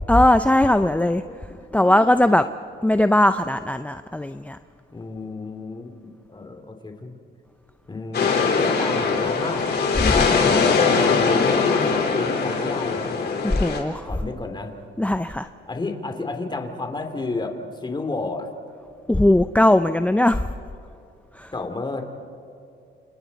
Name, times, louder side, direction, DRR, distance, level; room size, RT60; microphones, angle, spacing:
voice 1, 0.1-1.2 1.7-2.4 2.8-4.6 10.1-10.2 13.4-14.1 15.0-15.5 19.1-20.4 21.4-21.5, left 1 dB, 5° left, 10 dB, 0.5 m, -19 dB
voice 2, 4.9-7.2 7.9-9.7 10.0-13.3 14.0-14.7 15.7-18.5 21.5-22.1, left 3 dB, 20° left, 5 dB, 2.8 m, -31 dB
sound 1, 8.1-13.8, left 5 dB, 55° left, 4.1 m, -21 dB
29.5 x 28.5 x 4.1 m, 2.6 s
cardioid pair, 90°, 20 cm